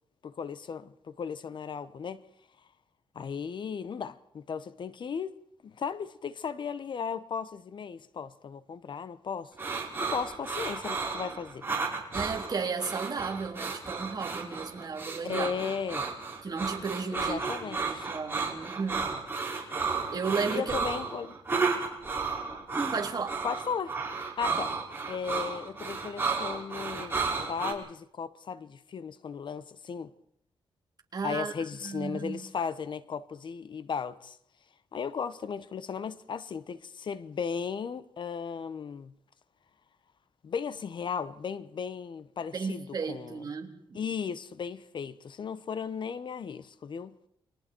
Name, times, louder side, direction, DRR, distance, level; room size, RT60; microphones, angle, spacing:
voice 1, 0.2-2.2 3.1-5.4 5.6-9.5 10.0-11.6 15.2-16.1 17.1-18.1 20.5-21.4 23.4-24.0 24.4-24.7 25.1-30.1 31.2-34.4 34.9-39.1 40.4-43.5 43.9-47.1, left 6 dB, 55° left, 1.0 m, -36 dB
sound 1, 9.6-27.7, right 4 dB, 25° right, 5.6 m, -33 dB
voice 2, 12.1-15.5 16.4-19.2 20.1-20.8 22.9-23.4 31.1-31.5 31.8-32.4 42.5-44.0, right 5 dB, 40° right, 3.4 m, -34 dB
29.5 x 23.5 x 4.6 m
cardioid pair, 110°, 10 cm